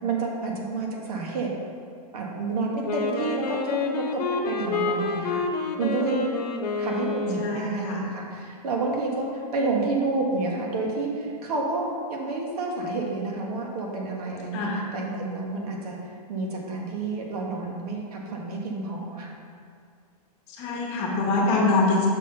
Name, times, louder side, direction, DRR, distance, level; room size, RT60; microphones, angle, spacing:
voice 1, 0.0-1.5 2.1-3.6 4.1-5.4 5.8-6.2 6.7-16.0 16.3-19.3, right 3 dB, 70° right, -1 dB, 1.6 m, -29 dB
Wind instrument woodwind instrument, 2.8-7.9, left 4 dB, 75° left, 0.9 m, -29 dB
voice 2, 7.4-8.0 14.5-14.8 20.6-22.1, left 3 dB, 30° left, -1 dB, 1.2 m, -24 dB
6.2 x 4.2 x 5.7 m, 2.2 s
hypercardioid pair, 160°, 21 cm